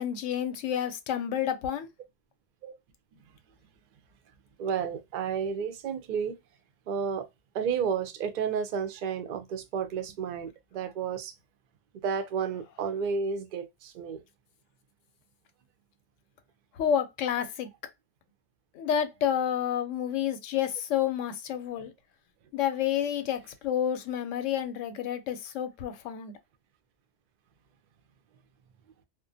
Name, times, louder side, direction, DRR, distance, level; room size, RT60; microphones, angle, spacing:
voice 1, 0.0-1.9 16.7-17.7 18.7-21.9 22.5-26.4, left 9 dB, 90° left, 0.9 m, -29 dB
voice 2, 4.6-6.4 6.9-7.3 7.5-11.3 12.0-14.2, right 6 dB, 60° right, 0.5 m, -31 dB
2.4 x 2.1 x 2.6 m
omnidirectional pair, 1.2 m